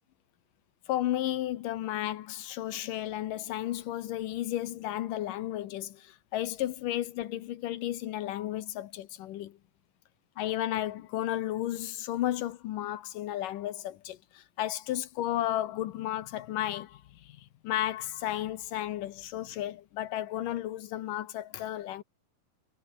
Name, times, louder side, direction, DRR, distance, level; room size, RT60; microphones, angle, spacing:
voice 1, 0.9-9.6 10.4-22.0, left 13 dB, 75° left, 2.6 m, -33 dB
omnidirectional pair, 3.9 m